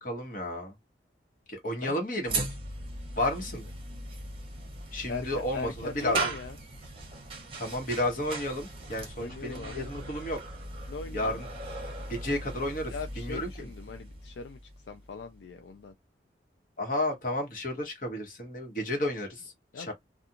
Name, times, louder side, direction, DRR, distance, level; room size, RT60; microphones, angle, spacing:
voice 1, 0.0-0.7 1.6-2.5 3.1-3.6 4.9-6.3 7.6-10.4 11.1-11.5 12.1-13.7 16.8-19.9, left 1 dB, 45° left, 1.1 m, -32 dB
sound 1, 2.3-15.5, right 2 dB, 30° right, 0.9 m, -38 dB
voice 2, 5.1-6.6 9.2-9.9 10.9-11.4 12.9-14.6 14.9-15.9 19.7-19.9, left 4 dB, 75° left, 0.4 m, -40 dB
2.4 x 2.3 x 2.8 m
head